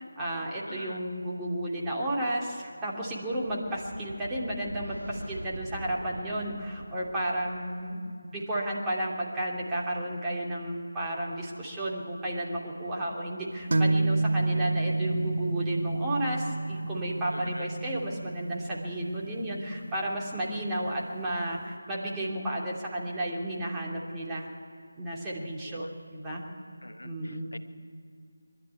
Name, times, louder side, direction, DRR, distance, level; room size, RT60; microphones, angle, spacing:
voice 1, 0.0-24.5 25.0-26.4 27.0-27.5, right 1 dB, 10° right, -5 dB, 2.8 m, -33 dB
voice 2, 0.7-1.0 17.3-17.7 25.6-25.9 26.8-27.6, left 1 dB, 75° left, 9 dB, 1.1 m, -43 dB
sound 1, 2.6-8.0, right 1 dB, 85° right, 4.5 m, -43 dB
sound 2, 13.7-21.2, right 2 dB, 55° right, 0.8 m, -30 dB
22.5 x 12.0 x 9.6 m, 2.2 s
figure-of-eight pair, 160°, 0 cm